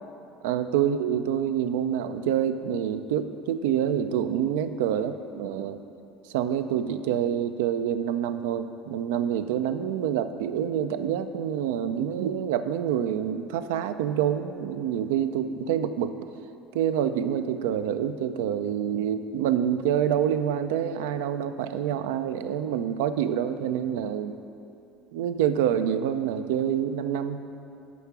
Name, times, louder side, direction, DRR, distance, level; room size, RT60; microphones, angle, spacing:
voice 1, 0.4-5.8 6.3-16.1 16.7-24.4 25.1-27.4, right 9 dB, 80° right, 10 dB, 0.3 m, -27 dB
6.9 x 4.7 x 5.9 m, 2.8 s
supercardioid pair, 85°, 0 cm